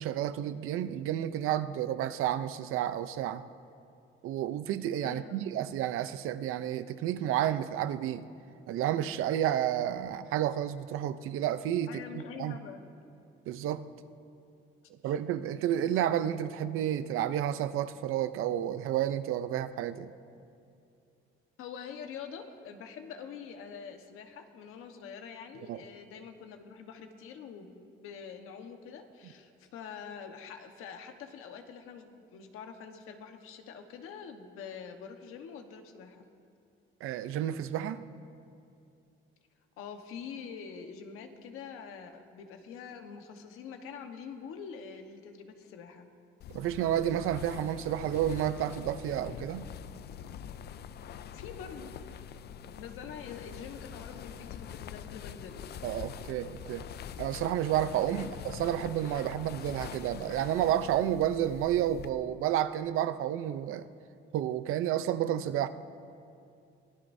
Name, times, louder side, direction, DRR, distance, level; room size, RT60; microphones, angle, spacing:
voice 1, 0.0-3.4 4.2-8.3 8.7-12.6 13.5-13.8 15.0-20.1 25.7-25.8 37.0-38.0 46.5-49.7 55.8-56.8 57.2-63.9 64.3-65.7, right 11 dB, 80° right, 12 dB, 0.6 m, -31 dB
voice 2, 5.0-5.4 11.9-12.8 15.0-15.1 21.6-36.3 39.8-46.1 51.3-51.9 52.7-55.6 58.1-58.3, left 6 dB, 85° left, 5 dB, 1.3 m, -45 dB
sound 1, 46.4-62.1, left 8 dB, 50° left, 0.5 m, -44 dB
23.5 x 17.0 x 2.7 m, 2.5 s
cardioid pair, 120°, 21 cm